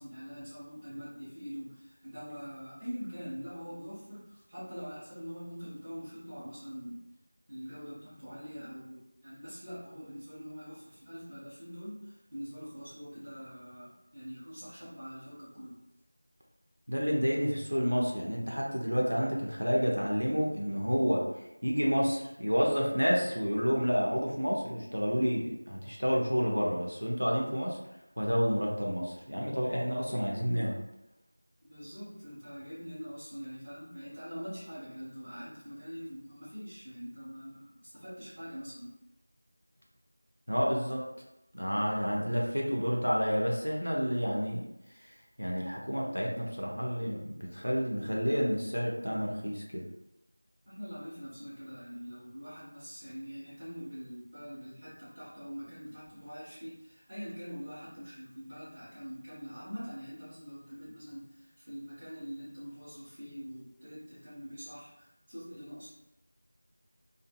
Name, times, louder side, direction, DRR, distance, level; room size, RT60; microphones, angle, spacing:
voice 1, 0.0-7.0 7.5-15.8 31.6-38.9 50.6-65.9, equal, 10° right, -17 dB, 1.1 m, -44 dB
voice 2, 16.9-21.2 21.6-27.8 28.2-30.8 40.5-41.0 41.5-44.7 45.0-45.1 45.4-49.8, equal, 90° right, -2 dB, 0.7 m, -29 dB
2.6 x 2.6 x 2.2 m, 0.89 s
figure-of-eight pair, 175°, 0 cm